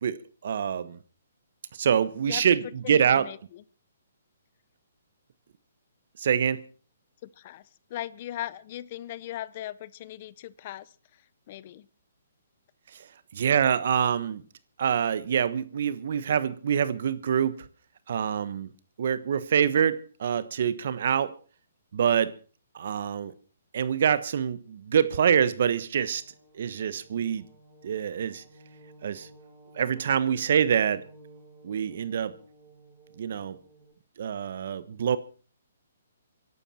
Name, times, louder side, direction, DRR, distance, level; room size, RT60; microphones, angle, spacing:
voice 1, 0.0-1.0 1.7-3.3 6.2-6.6 12.9-13.1 13.3-14.4 14.8-17.7 18.1-18.7 19.0-21.3 21.9-22.3 22.7-23.3 23.7-26.2 26.5-27.4 27.8-28.4 29.0-29.3 29.7-31.0 31.6-32.3 33.2-33.6 34.2-35.2, right 8 dB, 60° right, 1.2 m, -25 dB
voice 2, 2.3-2.6 2.8-3.6 7.2-11.2 11.5-11.9, left 13 dB, 45° left, 0.7 m, -39 dB
sound 1, 26.0-33.9, right 2 dB, 15° right, 5.3 m, -54 dB
25.0 x 11.5 x 4.3 m
hypercardioid pair, 140°, 0 cm